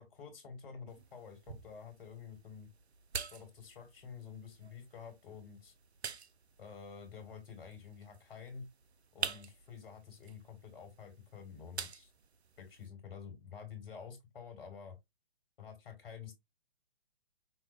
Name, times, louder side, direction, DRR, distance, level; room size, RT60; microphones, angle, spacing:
voice 1, 0.0-2.7 3.3-5.7 6.6-8.7 9.1-12.1 12.6-15.0 15.6-16.3, left 6 dB, 60° left, 1.9 m, -49 dB
sound 1, 0.9-12.9, right 6 dB, 85° right, 0.5 m, -47 dB
5.5 x 2.2 x 2.6 m
figure-of-eight pair, 125°, 31 cm